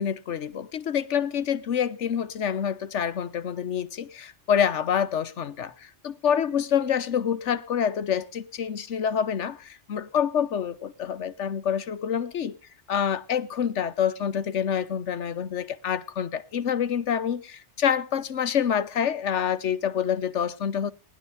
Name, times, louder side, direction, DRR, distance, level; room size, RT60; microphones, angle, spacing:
voice 1, 0.0-12.6 12.9-20.9, left 8 dB, 85° left, 1.3 m, -27 dB
19.0 x 11.5 x 3.5 m
omnidirectional pair, 1.2 m